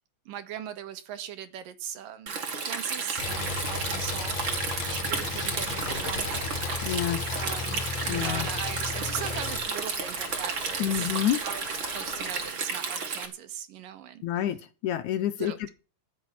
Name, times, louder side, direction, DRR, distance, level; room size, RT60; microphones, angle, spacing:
voice 1, 0.3-2.3 2.6-4.4 4.9-6.4 7.4-11.1 11.4-14.2 15.4-15.7, right 10 dB, 75° right, 3.1 m, -39 dB
Stream, 2.3-13.3, right 5 dB, 40° right, 2.5 m, -33 dB
Engine, 3.2-9.6, left 5 dB, 55° left, 3.4 m, -34 dB
sound 1, 5.6-12.5, left 4 dB, 35° left, 1.9 m, -43 dB
voice 2, 6.8-7.3 8.1-8.5 10.8-11.4 14.2-14.6 14.8-15.5, left 11 dB, 70° left, 2.0 m, -28 dB
14.0 x 7.3 x 8.6 m
omnidirectional pair, 4.0 m